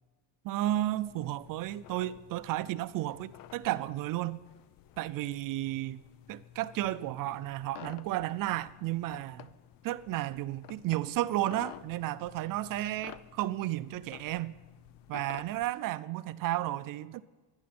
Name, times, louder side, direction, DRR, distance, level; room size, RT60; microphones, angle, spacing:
voice 1, 0.4-4.4 5.0-6.0 6.3-9.5 9.8-14.5 15.1-17.2, right 15 dB, 55° right, 0.5 m, -33 dB
sound 1, 0.7-15.7, left 12 dB, 60° left, 0.7 m, -52 dB
24.5 x 10.5 x 4.3 m
cardioid pair, 140°, 39 cm